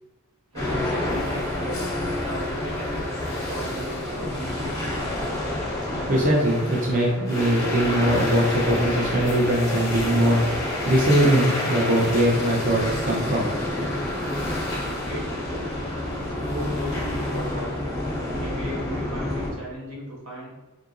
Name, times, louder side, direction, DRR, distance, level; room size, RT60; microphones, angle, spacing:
voice 1, 0.5-1.8 2.2-5.4 14.6-15.8 16.2-17.8 18.3-20.5, right 1 dB, 85° right, -4 dB, 1.5 m, -37 dB
sound 1, 0.6-19.5, left 1 dB, 15° left, 1.0 m, -28 dB
voice 2, 5.9-13.9, right 1 dB, 35° right, -3 dB, 0.7 m, -22 dB
4.3 x 3.8 x 2.6 m, 1.1 s
head